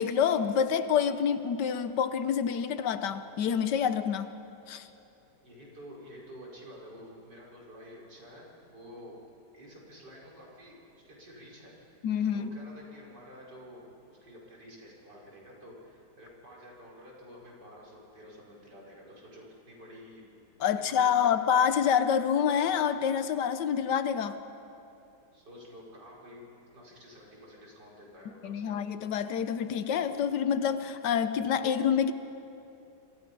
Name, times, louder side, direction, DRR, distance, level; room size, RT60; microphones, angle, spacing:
voice 1, 0.0-4.3 4.7-4.9 12.0-12.5 20.6-24.4 28.4-32.1, left 8 dB, 90° left, 11 dB, 1.5 m, -27 dB
voice 2, 5.4-9.2 9.5-12.0 12.3-20.2 20.8-21.4 25.3-26.4 26.7-28.8, equal, 85° right, -3 dB, 5.7 m, -50 dB
27.0 x 25.5 x 5.4 m, 2.8 s
omnidirectional pair, 1.8 m